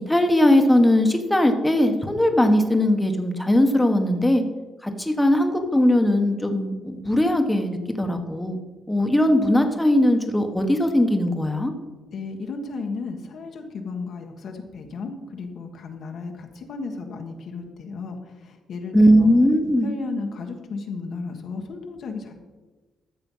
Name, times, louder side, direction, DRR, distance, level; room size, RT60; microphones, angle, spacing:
voice 1, 0.1-4.4 4.8-8.6 8.9-11.7 18.9-19.9, left 1 dB, 5° left, 5 dB, 1.4 m, -19 dB
voice 2, 12.1-19.3 19.8-22.3, left 4 dB, 60° left, 3 dB, 1.4 m, -34 dB
13.5 x 6.9 x 5.6 m, 1.3 s
cardioid pair, 110°, 0 cm